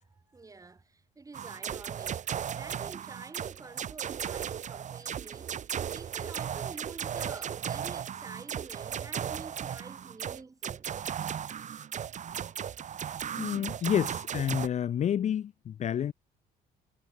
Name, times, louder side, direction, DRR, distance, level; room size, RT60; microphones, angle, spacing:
voice 1, 0.1-5.6 5.9-10.9, right 3 dB, 20° right, 2.1 m, -48 dB
sound 1, 1.3-14.7, right 8 dB, 45° right, 2.1 m, -36 dB
voice 2, 13.4-16.1, left 9 dB, 45° left, 0.7 m, -29 dB
cardioid pair, 110°, 17 cm